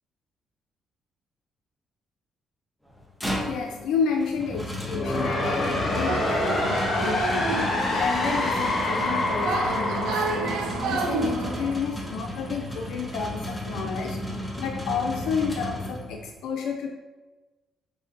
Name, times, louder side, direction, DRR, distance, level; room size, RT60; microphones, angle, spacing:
sound 1, 2.9-16.3, left 1 dB, 5° left, 0.8 m, -34 dB
voice 1, 3.4-7.5 7.9-16.9, left 5 dB, 85° left, 2 dB, 0.4 m, -31 dB
sound 2, 4.8-11.7, left 2 dB, 50° left, 1.0 m, -27 dB
sound 3, 5.8-11.8, right 3 dB, 85° right, 0.4 m, -30 dB
6.7 x 2.6 x 2.5 m, 1.2 s
cardioid pair, 90°, 0 cm